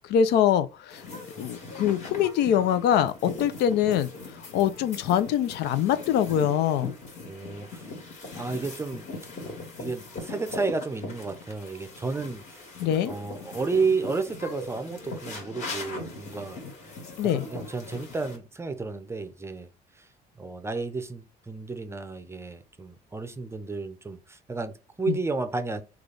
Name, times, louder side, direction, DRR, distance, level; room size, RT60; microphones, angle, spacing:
voice 1, 0.1-1.0 1.4-4.1 4.5-6.9 12.8-13.1 17.2-17.4 25.1-25.2, left 9 dB, 80° left, 0.5 m, -24 dB
sound 1, 0.9-18.4, left 3 dB, 45° left, 1.7 m, -40 dB
voice 2, 7.3-7.9 8.3-9.1 9.8-12.6 13.1-16.6 17.2-19.7 20.0-20.1 20.4-25.8, right 4 dB, 15° right, 0.5 m, -32 dB
3.3 x 2.3 x 3.8 m
cardioid pair, 110°, 17 cm